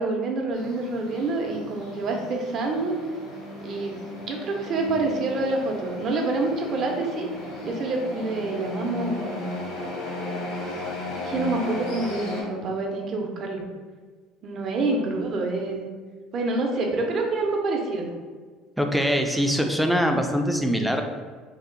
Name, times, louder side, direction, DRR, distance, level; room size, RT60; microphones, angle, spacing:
voice 1, 0.0-2.9 3.6-7.3 7.6-9.4 11.2-13.6 14.4-15.8 16.3-18.1, right 3 dB, 45° right, 1 dB, 0.6 m, -27 dB
sound 1, 0.5-12.4, left 2 dB, 90° left, 1.2 m, -35 dB
voice 2, 18.8-21.0, equal, ahead, 3 dB, 0.3 m, -23 dB
2.7 x 2.0 x 3.8 m, 1.5 s
cardioid pair, 120°, 0 cm